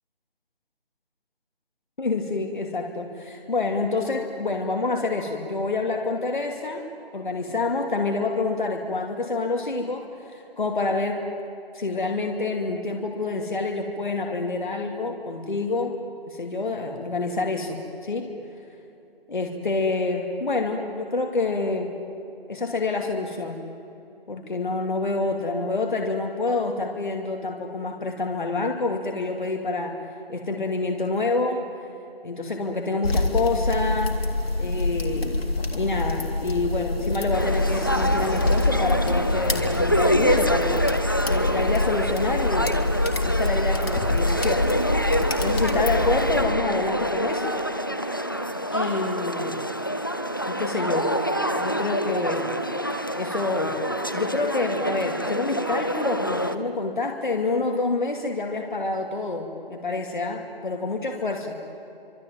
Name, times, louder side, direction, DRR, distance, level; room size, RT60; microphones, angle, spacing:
voice 1, 2.0-6.8 7.1-11.3 11.7-16.0 16.3-18.3 19.3-22.0 22.5-23.6 24.3-30.0 30.3-31.6 32.2-34.2 34.6-35.4 35.7-40.8 41.3-42.8 43.2-44.7 45.4-47.6 48.7-49.6 50.5-51.1 51.6-52.6 53.1-53.8 54.1-61.6, left 3 dB, 55° left, 3 dB, 2.7 m, -27 dB
sound 1, 33.0-46.4, left 2 dB, 80° left, 3.4 m, -25 dB
sound 2, 37.3-56.5, equal, 20° left, 0.6 m, -26 dB
26.5 x 24.0 x 9.2 m, 2.8 s
figure-of-eight pair, 175°, 30 cm